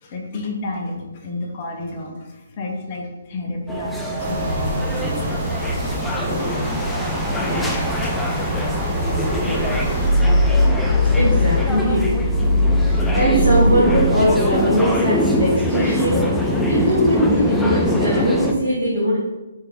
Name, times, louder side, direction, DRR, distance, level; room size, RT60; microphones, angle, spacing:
voice 1, 0.0-5.3 5.8-6.0 7.1-7.5, left 2 dB, 35° left, 0 dB, 0.7 m, -31 dB
sound 1, 3.7-18.5, left 1 dB, 5° left, 0.4 m, -24 dB
sound 2, 4.2-10.1, right 1 dB, 20° right, 0.8 m, -25 dB
sound 3, 10.0-14.9, left 1 dB, 80° right, 1.4 m, -19 dB
voice 2, 11.2-12.1 12.8-19.2, right 1 dB, 50° right, -9 dB, 1.3 m, -20 dB
3.6 x 2.9 x 3.5 m, 1.1 s
figure-of-eight pair, 135°, 0 cm